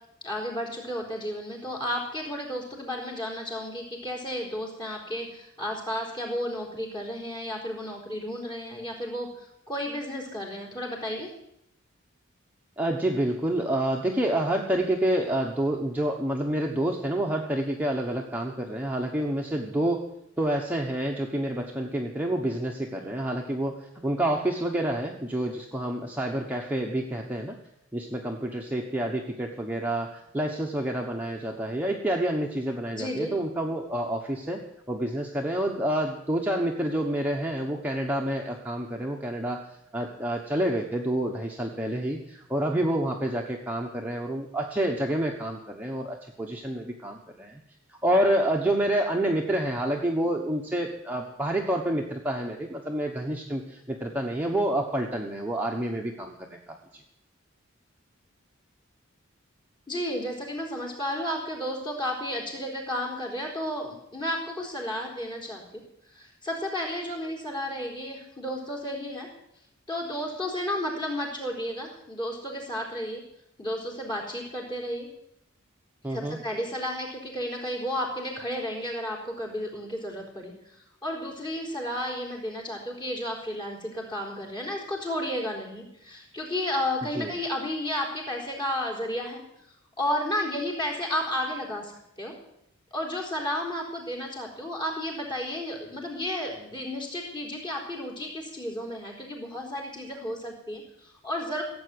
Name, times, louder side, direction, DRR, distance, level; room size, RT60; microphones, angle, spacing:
voice 1, 0.2-11.3 32.9-33.3 59.9-65.8 66.1-69.3 69.9-73.2 73.6-75.1 76.1-80.5 81.0-89.4 90.0-91.9 92.2-92.3 92.9-101.6, left 1 dB, 20° left, 1 dB, 4.2 m, -32 dB
voice 2, 12.8-20.0 20.4-27.6 27.9-34.6 34.9-39.6 39.9-47.6 48.0-56.6 76.0-76.4 87.2-87.3, right 1 dB, 10° right, 0 dB, 1.2 m, -28 dB
16.5 x 7.8 x 9.7 m, 0.79 s
head